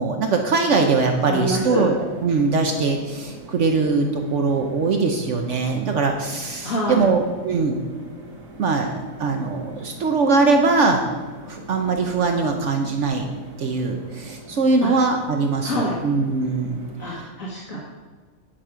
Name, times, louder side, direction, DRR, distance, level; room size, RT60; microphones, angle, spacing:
voice 1, 0.0-1.9 2.2-7.8 8.6-11.1 11.5-13.3 13.6-17.3, right 4 dB, 65° right, 4 dB, 1.1 m, -21 dB
sound 1, 0.7-17.2, right 1 dB, 80° right, 2.1 m, -42 dB
voice 2, 1.3-1.9 6.6-7.0 14.8-14.9 15.6-16.0 17.0-17.8, left 1 dB, 75° left, -5 dB, 1.9 m, -26 dB
10.0 x 5.9 x 4.9 m, 1.4 s
omnidirectional pair, 1.4 m